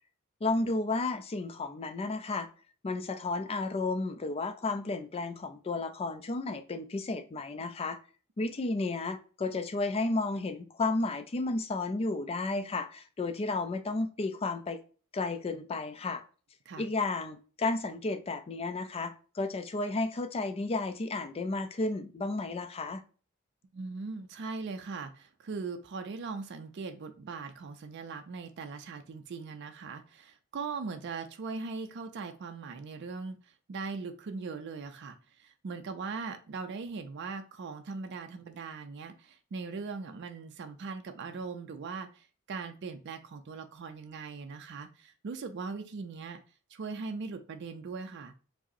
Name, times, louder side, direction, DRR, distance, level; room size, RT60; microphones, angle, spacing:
voice 1, 0.4-2.5 2.8-8.0 8.4-14.8 15.1-16.2 16.8-23.0, left 3 dB, 30° left, 9 dB, 0.4 m, -32 dB
voice 2, 23.7-46.4 46.7-48.3, right 4 dB, 55° right, 7 dB, 0.4 m, -40 dB
4.8 x 2.0 x 2.6 m, 0.39 s
head